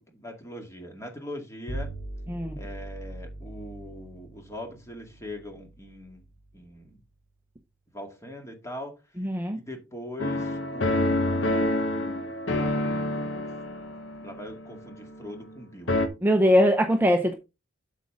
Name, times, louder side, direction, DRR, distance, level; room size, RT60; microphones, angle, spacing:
voice 1, 0.0-1.9 2.6-7.0 7.9-12.4 13.1-13.5 14.0-16.1, left 1 dB, 15° left, 2.1 m, -42 dB
Bowed string instrument, 1.7-7.3, right 1 dB, 80° left, 3.4 m, -41 dB
voice 2, 9.2-9.6 16.2-17.3, equal, 10° right, 0.7 m, -21 dB
sound 1, 10.2-15.6 15.9-16.1, left 1 dB, 65° left, 1.2 m, -28 dB
8.2 x 7.3 x 3.7 m
head